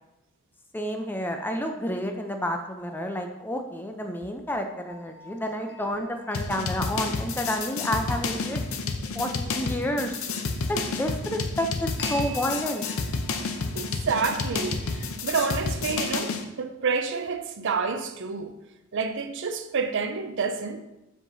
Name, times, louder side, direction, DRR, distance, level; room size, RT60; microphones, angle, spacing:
voice 1, 0.7-8.6 9.1-10.1 10.7-12.9, equal, 10° left, 0.5 m, -30 dB
sound 1, 4.9-7.7 12.0-15.6, right 1 dB, 55° left, 0.8 m, -45 dB
sound 2, 6.3-16.4, left 4 dB, 80° left, 0.6 m, -30 dB
voice 2, 13.7-18.6 18.9-20.8, right 5 dB, 60° right, 0.5 m, -29 dB
7.4 x 5.7 x 2.6 m
head